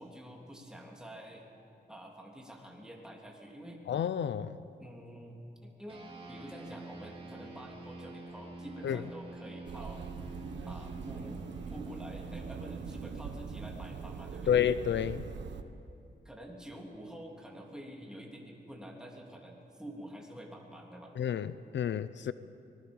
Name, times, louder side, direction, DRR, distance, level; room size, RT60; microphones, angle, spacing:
voice 1, 0.0-1.5 1.9-3.8 4.8-5.4 5.6-10.0 10.6-14.6 16.2-21.1, equal, 5° right, 3.2 m, -48 dB
voice 2, 3.9-4.6 8.8-9.0 14.5-15.2 21.2-22.3, left 9 dB, 85° left, 0.6 m, -30 dB
sound 1, 5.9-15.6, right 3 dB, 30° right, 3.5 m, -48 dB
sound 2, 9.6-15.6, right 6 dB, 80° right, 1.0 m, -42 dB
24.5 x 20.0 x 5.5 m
wide cardioid pair, 105°, 18 cm